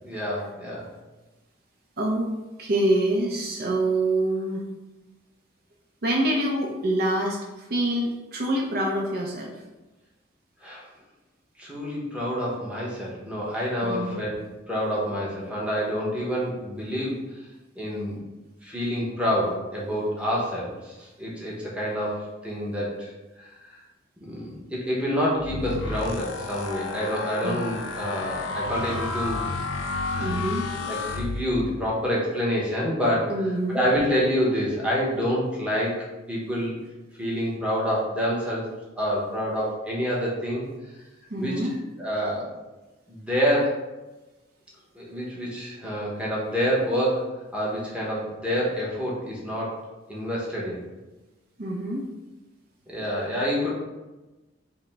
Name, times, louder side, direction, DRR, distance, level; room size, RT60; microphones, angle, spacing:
voice 1, 0.0-0.9 10.6-10.8 11.6-17.4 17.8-18.2 18.6-23.1 23.4-23.7 24.2-29.5 30.1-30.4 30.9-33.3 33.7-36.8 37.2-38.7 39.0-40.6 41.4-41.6 42.0-42.6 43.1-43.8 44.9-49.8 50.1-50.8 52.9-53.7, equal, 5° right, -5 dB, 0.8 m, -27 dB
voice 2, 2.0-2.3 2.6-4.6 6.0-9.5 13.8-14.1 27.4-27.6 30.2-30.6 33.3-33.8 41.3-41.7 51.6-52.1, right 1 dB, 50° right, -1 dB, 0.5 m, -26 dB
sound 1, 25.4-31.8, left 3 dB, 85° left, 0.4 m, -31 dB
4.9 x 2.1 x 3.3 m, 1.1 s
head